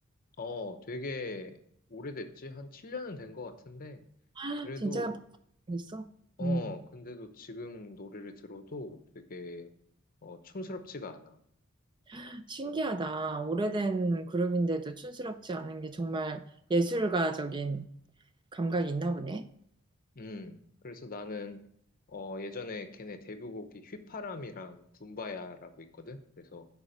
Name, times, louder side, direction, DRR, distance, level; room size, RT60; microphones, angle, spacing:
voice 1, 0.4-1.5 1.9-4.0 4.6-5.2 6.4-9.7 10.2-11.4 20.1-21.6 22.1-26.7, left 3 dB, 45° left, 8 dB, 0.8 m, -41 dB
voice 2, 4.4-5.2 5.7-6.1 6.4-6.7 12.1-16.4 16.7-17.9 18.5-19.4, right 2 dB, 20° right, 10 dB, 0.4 m, -31 dB
7.2 x 4.9 x 6.5 m, 0.69 s
head